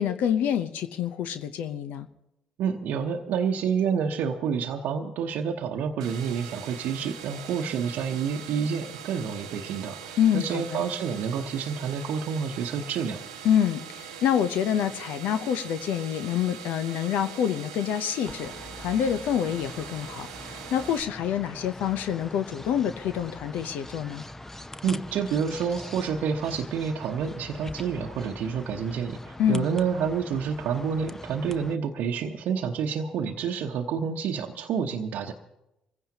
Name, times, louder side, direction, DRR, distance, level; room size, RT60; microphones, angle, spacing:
voice 1, 0.0-2.1 10.2-10.8 13.4-18.5 18.8-24.2 29.4-29.7, left 9 dB, 65° left, 10 dB, 0.7 m, -27 dB
voice 2, 2.6-13.2 24.8-35.3, right 6 dB, 65° right, 0 dB, 0.9 m, -29 dB
sound 1, 6.0-21.0, right 8 dB, 90° right, 0.9 m, -42 dB
sound 2, 18.2-31.8, left 1 dB, 10° left, 0.7 m, -43 dB
24.5 x 16.0 x 2.9 m, 0.87 s
hypercardioid pair, 50°, 3 cm